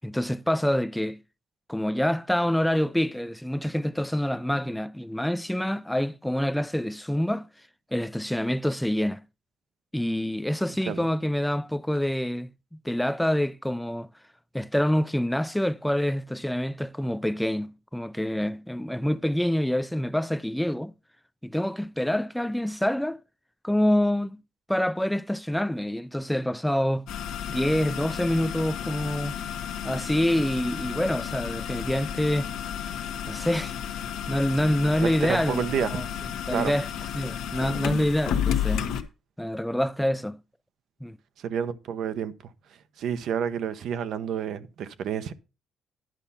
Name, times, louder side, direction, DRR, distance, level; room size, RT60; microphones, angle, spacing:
voice 1, 0.0-1.2 1.7-7.5 7.9-9.2 9.9-12.5 12.8-14.1 14.5-20.9 21.4-23.2 23.6-24.4 24.7-27.1 27.5-29.4 29.8-32.5 33.3-33.7 34.3-35.6 35.9-36.1 36.5-36.9 37.1-38.9 39.4-40.4 41.0-41.2, left 1 dB, 5° left, 0.4 m, -26 dB
sound 1, 27.1-39.0, left 9 dB, 90° left, 1.1 m, -32 dB
voice 2, 35.0-36.0 36.5-36.7 41.4-42.3 43.0-45.3, right 8 dB, 75° right, 0.9 m, -29 dB
11.0 x 5.7 x 5.6 m
cardioid pair, 90°, 0 cm